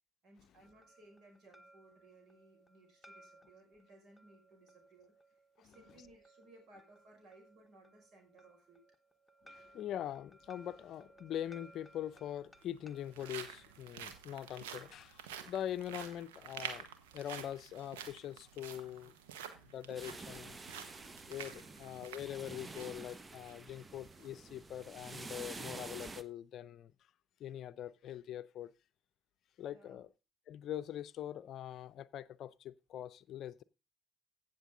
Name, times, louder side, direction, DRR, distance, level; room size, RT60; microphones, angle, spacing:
voice 1, 0.2-5.1 5.6-8.8 21.5-22.1 29.7-30.0, right 2 dB, 60° right, 5.7 m, -62 dB
sound 1, 0.6-14.5, right 1 dB, 10° left, 1.3 m, -63 dB
voice 2, 5.6-6.1 9.4-16.9 17.1-19.1 19.6-20.6 21.3-26.9 27.4-28.7 29.6-30.1 30.5-33.6, left 11 dB, 60° left, 0.5 m, -43 dB
sound 2, 11.4-11.5 12.5-23.0 23.4-23.5 24.0-24.3, right 8 dB, 80° right, 1.2 m, -49 dB
sound 3, 19.9-26.2, right 3 dB, 30° right, 0.9 m, -49 dB
16.0 x 6.8 x 3.8 m
hypercardioid pair, 50°, 0 cm